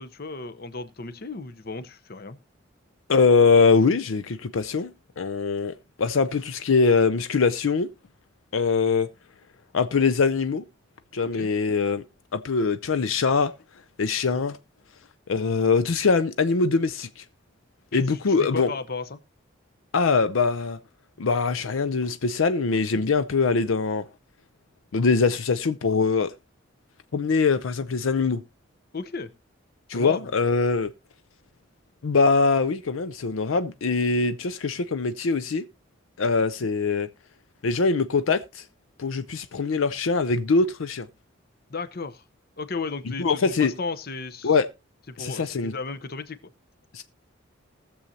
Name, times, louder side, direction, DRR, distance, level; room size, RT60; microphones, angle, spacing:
voice 1, 0.0-2.4 11.3-11.5 17.9-19.2 28.9-29.3 29.9-30.3 41.7-42.2 42.6-44.5 45.1-46.4, left 4 dB, 50° left, 0.8 m, -34 dB
voice 2, 3.1-4.9 5.2-7.9 8.5-9.1 9.7-10.6 11.1-12.0 12.3-13.5 14.0-14.6 15.3-17.2 17.9-18.7 19.9-20.8 21.2-24.0 24.9-26.3 27.1-28.4 29.9-30.9 32.0-35.6 36.2-37.1 37.6-38.6 39.0-41.1 43.2-43.7 44.4-44.7 45.2-45.7 46.9-47.0, left 4 dB, 80° left, 0.5 m, -22 dB
20.0 x 7.1 x 2.8 m
head